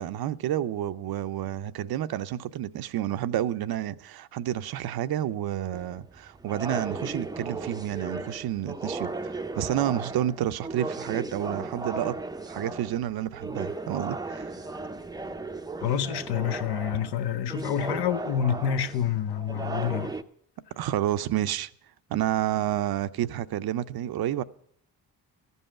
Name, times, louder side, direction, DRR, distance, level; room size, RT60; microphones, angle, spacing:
voice 1, 0.0-12.2 12.5-14.5 20.8-21.7 22.1-24.4, right 12 dB, 70° right, 0.6 m, -30 dB
sound 1, 5.7-20.2, right 3 dB, 10° right, 0.5 m, -36 dB
voice 2, 15.8-20.2, left 8 dB, 80° left, 0.7 m, -28 dB
14.0 x 5.5 x 8.7 m
cardioid pair, 95°, 39 cm